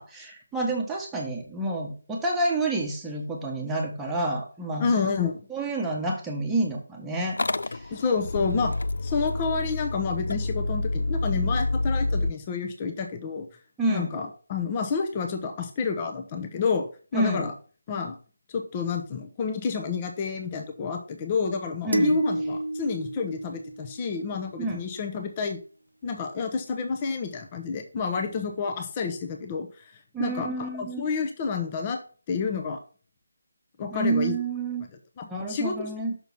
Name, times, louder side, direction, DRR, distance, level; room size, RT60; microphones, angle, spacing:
voice 1, 0.0-4.9 5.5-7.9 13.8-14.1 17.1-17.5 21.8-22.2 24.6-24.8 30.1-31.1 33.9-34.9 35.3-36.1, right 2 dB, 5° right, -2 dB, 1.2 m, -29 dB
voice 2, 4.8-5.4 7.9-8.7 9.0-13.5 13.9-17.5 17.9-18.2 18.5-25.6 26.0-29.9 30.2-32.0 32.3-32.8 33.8-34.3 35.2-35.7, left 5 dB, 25° left, 4 dB, 0.7 m, -29 dB
Motor vehicle (road) / Engine starting, 7.3-12.3, left 2 dB, 60° left, 0.4 m, -28 dB
sound 1, 21.9-24.3, right 1 dB, 85° right, 0.5 m, -29 dB
6.1 x 4.0 x 5.6 m, 0.39 s
figure-of-eight pair, 155°, 0 cm